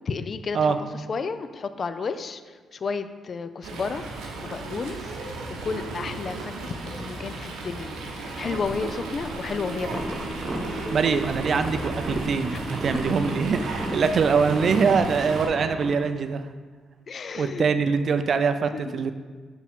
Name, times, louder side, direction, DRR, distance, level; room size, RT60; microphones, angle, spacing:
voice 1, 0.1-4.0 4.4-5.1 5.6-10.2 12.5-12.6 13.6-13.7 17.1-17.7 18.4-18.5 18.7-18.8, left 4 dB, 50° left, 10 dB, 0.4 m, -32 dB
Fowl, 3.6-15.5, right 3 dB, 90° right, 0.8 m, -35 dB
sound 1, 8.2-16.0, equal, 5° left, 0.6 m, -40 dB
sound 2, 9.9-15.9, right 1 dB, 35° right, 1.1 m, -34 dB
voice 2, 10.9-16.4 17.4-19.1, right 5 dB, 55° right, 10 dB, 0.4 m, -23 dB
5.9 x 4.5 x 3.6 m, 1.5 s
cardioid pair, 75°, 0 cm